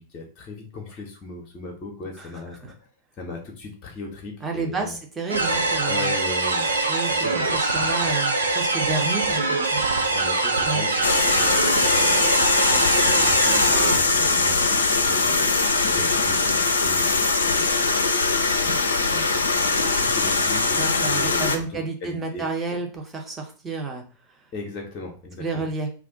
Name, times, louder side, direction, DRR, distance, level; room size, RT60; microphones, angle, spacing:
voice 1, 0.0-2.6 3.2-5.0 5.8-7.3 10.1-11.0 11.3-17.7 18.5-22.8 24.5-25.7, left 3 dB, 30° left, 2 dB, 0.7 m, -38 dB
voice 2, 4.4-6.1 6.8-9.8 10.6-10.9 20.8-24.0 25.4-25.9, right 4 dB, 15° right, 2 dB, 0.8 m, -30 dB
sound 1, 5.3-14.0, right 3 dB, 75° right, 0.5 m, -23 dB
sound 2, 11.0-21.6, left 3 dB, 70° left, 0.4 m, -21 dB
2.5 x 2.4 x 3.7 m, 0.39 s
figure-of-eight pair, 90°, 0 cm